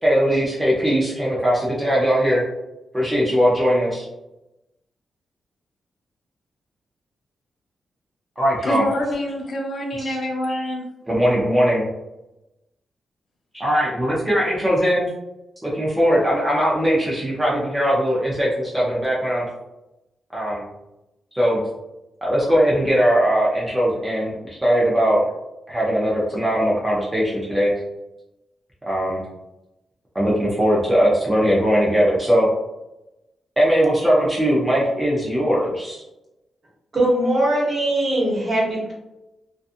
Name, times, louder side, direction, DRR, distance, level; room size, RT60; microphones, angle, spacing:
voice 1, 0.0-2.4 2.9-4.1 8.4-8.8 10.0-10.2 11.1-11.9 13.5-15.1 15.6-19.5 20.3-20.6 21.3-21.6 22.2-25.2 25.7-27.7 28.9-29.2 30.1-32.5 33.6-36.0, equal, 10° right, -6 dB, 0.5 m, -20 dB
voice 2, 8.6-10.9, left 1 dB, 45° left, 1 dB, 0.5 m, -26 dB
voice 3, 36.9-38.9, right 1 dB, 35° right, -5 dB, 1.1 m, -20 dB
2.6 x 2.3 x 2.5 m, 0.94 s
wide cardioid pair, 130°, 0 cm